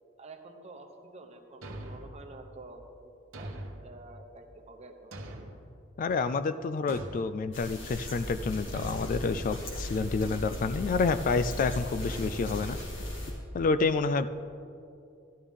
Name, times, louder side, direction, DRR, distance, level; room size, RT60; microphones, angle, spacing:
voice 1, 0.2-3.1 3.4-3.6 3.8-5.5, right 2 dB, 30° right, 3 dB, 0.9 m, -49 dB
Thump thud, 1.6-2.2 3.3-3.9 5.1-5.7 6.9-7.3 8.7-9.1, right 1 dB, 80° right, 1.2 m, -42 dB
voice 2, 6.0-12.8 13.5-14.3, left 4 dB, 40° left, 12 dB, 0.3 m, -28 dB
sound 1, 7.5-13.3, left 1 dB, 65° left, 2.2 m, -37 dB
13.0 x 11.5 x 3.6 m, 2.6 s
head